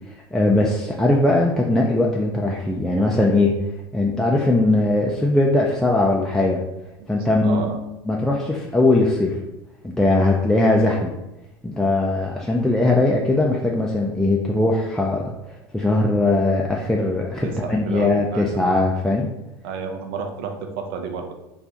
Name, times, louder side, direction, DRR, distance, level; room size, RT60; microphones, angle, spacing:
voice 1, 0.3-3.5 3.9-6.6 7.1-7.7 8.1-9.4 9.8-11.1 11.6-15.3 15.7-19.3, left 2 dB, 5° left, -2 dB, 0.4 m, -20 dB
voice 2, 7.2-7.8 17.4-18.5 19.6-21.3, right 5 dB, 65° right, 4 dB, 0.5 m, -31 dB
2.4 x 2.3 x 4.0 m, 0.96 s
hypercardioid pair, 80°, 13 cm